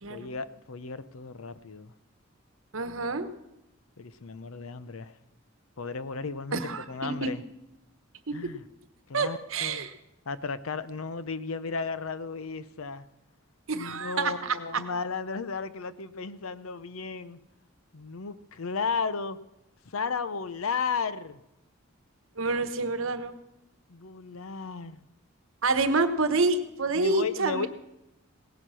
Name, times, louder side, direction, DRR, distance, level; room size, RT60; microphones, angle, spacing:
voice 1, 0.1-1.9 4.0-5.1 5.8-7.4 8.3-8.6 9.1-9.9 10.3-13.1 13.7-17.4 17.9-19.4 19.9-21.4 23.9-25.0 26.9-27.7, left 4 dB, 75° left, 14 dB, 0.7 m, -34 dB
voice 2, 2.7-3.3 6.5-7.3 8.3-8.6 9.1-9.9 13.7-14.8 22.4-23.3 25.6-27.7, right 3 dB, 70° right, 10 dB, 1.1 m, -28 dB
17.5 x 10.0 x 6.2 m, 0.89 s
head